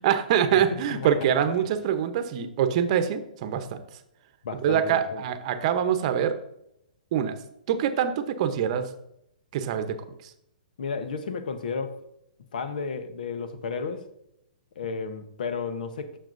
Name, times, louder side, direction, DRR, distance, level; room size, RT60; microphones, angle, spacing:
voice 1, 0.0-3.8 4.6-6.3 7.1-7.4 7.7-8.9 9.5-10.0 10.2-10.3, right 9 dB, 45° right, 9 dB, 0.8 m, -24 dB
voice 2, 4.4-5.2 10.8-12.0 12.5-14.1 14.8-16.2, left 5 dB, 70° left, 10 dB, 0.9 m, -33 dB
9.0 x 6.4 x 2.6 m, 0.78 s
hypercardioid pair, 135°, 5 cm